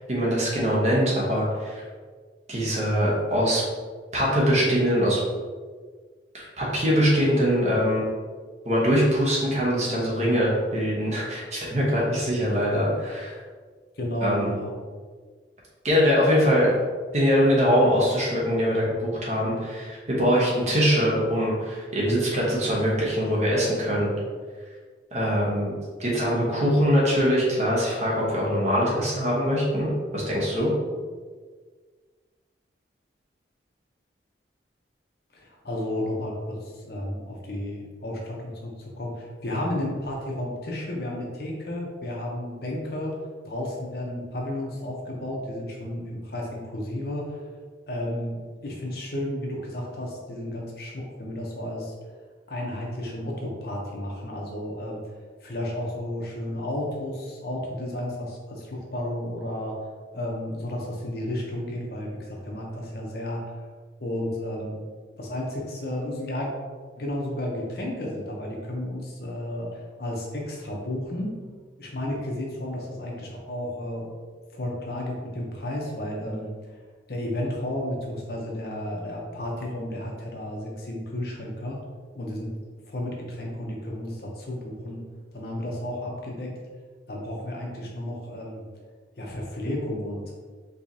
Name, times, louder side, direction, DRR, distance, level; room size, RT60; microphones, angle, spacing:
voice 1, 0.0-1.8 2.5-3.6 4.1-5.2 6.3-8.0 8.6-13.4 14.2-14.5 15.8-16.8 17.1-24.1 25.1-25.7 26.0-30.7, equal, 35° right, -5 dB, 1.1 m, -23 dB
voice 2, 13.9-14.8 35.3-43.1 43.4-47.4 47.9-52.2 52.5-55.0 55.4-59.7 60.1-63.5 64.0-64.8 65.1-66.5 67.0-71.3 71.8-74.1 74.5-76.8 77.1-81.8 82.1-82.5 82.9-85.0 85.3-86.5 87.1-88.7 89.2-90.3, left 1 dB, 55° left, -1 dB, 0.8 m, -32 dB
4.7 x 3.1 x 2.7 m, 1.5 s
head